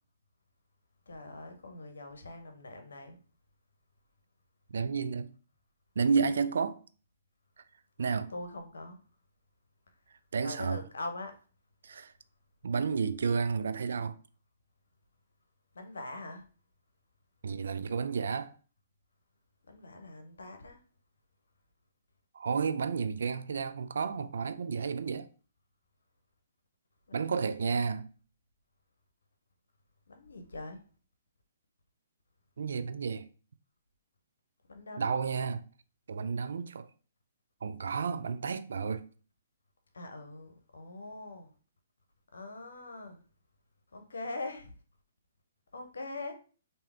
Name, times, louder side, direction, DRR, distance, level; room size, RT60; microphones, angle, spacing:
voice 1, 1.1-3.2 8.3-9.0 10.4-11.3 15.7-16.4 19.7-20.8 27.1-27.6 30.1-30.8 34.7-35.2 39.9-41.5 42.3-43.2 43.9-44.7 45.7-46.3, left 2 dB, 80° left, 0.8 m, -42 dB
voice 2, 4.7-5.3 6.0-6.8 8.0-8.3 10.3-10.8 11.8-12.1 12.6-14.1 17.4-18.5 22.3-25.3 27.1-28.1 32.6-33.3 35.0-35.6 36.1-36.9 37.6-39.0, right 5 dB, 70° right, 0.3 m, -31 dB
3.4 x 2.8 x 3.3 m
hypercardioid pair, 140°, 0 cm